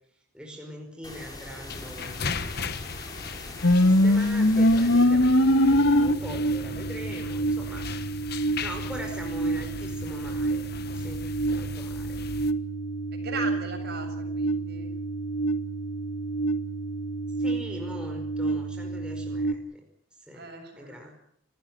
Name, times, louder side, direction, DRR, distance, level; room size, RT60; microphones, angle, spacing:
voice 1, 0.3-2.3 3.8-7.9 8.6-10.6 10.9-11.3 11.5-12.2 17.4-19.8 20.3-21.1, equal, 5° right, 1 dB, 5.0 m, -42 dB
sound 1, 1.0-5.0, left 2 dB, 20° left, 5.2 m, -42 dB
sound 2, 1.7-12.5, left 4 dB, 50° left, 1.4 m, -38 dB
sound 3, 3.6-19.5, equal, 75° left, 1.6 m, -25 dB
voice 2, 13.1-14.9 20.3-21.1, right 3 dB, 55° right, 4 dB, 7.4 m, -38 dB
29.5 x 15.0 x 9.0 m, 0.70 s
head